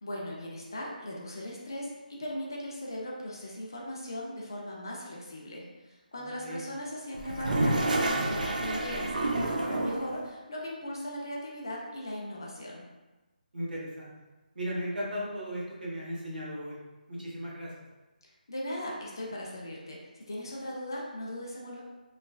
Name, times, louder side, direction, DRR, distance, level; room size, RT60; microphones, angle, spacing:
voice 1, 0.0-12.9 18.5-21.8, left 1 dB, 25° left, -3 dB, 0.3 m, -38 dB
voice 2, 6.1-6.6 13.5-14.1 14.5-16.8 17.1-17.7, equal, 75° right, -4 dB, 1.0 m, -36 dB
Toilet flush, 7.1-10.2, right 2 dB, 60° right, 0.4 m, -29 dB
3.0 x 2.2 x 2.3 m, 1.1 s
hypercardioid pair, 180°, 5 cm